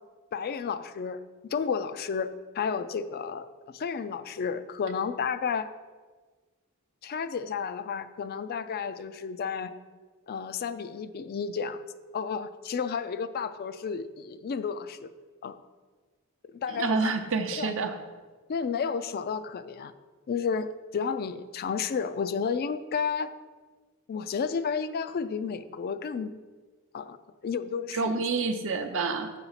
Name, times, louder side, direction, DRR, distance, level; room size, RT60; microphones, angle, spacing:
voice 1, 0.3-1.2 1.5-5.7 7.0-9.8 10.3-11.8 12.1-15.1 15.4-15.6 16.5-17.1 17.6-17.7 18.5-19.9 20.3-23.3 24.1-26.4 26.9-27.2 27.4-28.2, left 6 dB, 45° left, 12 dB, 0.3 m, -32 dB
voice 2, 16.7-18.0 27.9-29.3, right 4 dB, 60° right, 7 dB, 0.7 m, -28 dB
7.8 x 4.1 x 5.7 m, 1.4 s
head